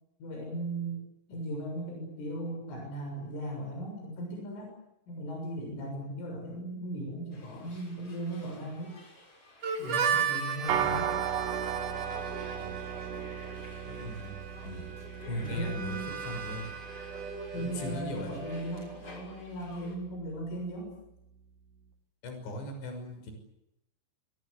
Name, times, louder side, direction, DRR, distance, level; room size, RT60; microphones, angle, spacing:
voice 1, 0.2-1.0 1.3-4.7 5.1-9.0 9.8-11.1 15.4-16.2 17.5-20.9, right 1 dB, 85° left, 1 dB, 9.4 m, -37 dB
sound 1, 7.3-20.0, left 2 dB, 30° left, 7.5 m, -52 dB
Harmonica, 9.6-19.2, right 7 dB, 40° right, 3.0 m, -36 dB
sound 2, 10.7-20.2, right 8 dB, 60° right, 2.6 m, -37 dB
voice 2, 13.9-14.3 14.6-14.9 15.3-16.0 16.2-16.7 17.5-18.3 22.2-23.3, equal, 65° left, 6 dB, 8.4 m, -38 dB
26.0 x 25.0 x 8.3 m, 0.85 s
omnidirectional pair, 5.6 m